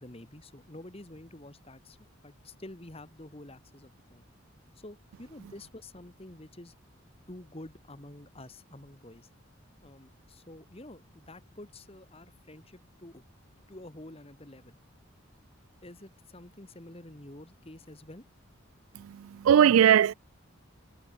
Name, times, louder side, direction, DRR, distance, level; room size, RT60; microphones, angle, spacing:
voice 1, 0.0-2.0 2.2-4.2 4.8-6.7 7.3-9.3 9.8-13.2 13.7-14.8 15.8-18.2, left 1 dB, 30° left, 1.7 m, -48 dB
voice 2, 18.9-20.1, right 9 dB, 90° right, 0.3 m, -20 dB
head